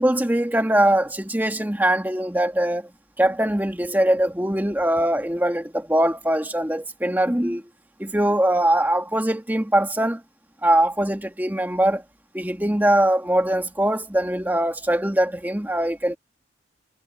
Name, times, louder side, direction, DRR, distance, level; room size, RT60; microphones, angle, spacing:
voice 1, 0.0-2.9 3.2-7.6 8.0-10.2 10.6-12.0 12.3-16.2, right 1 dB, 10° right, 1.5 m, -22 dB
head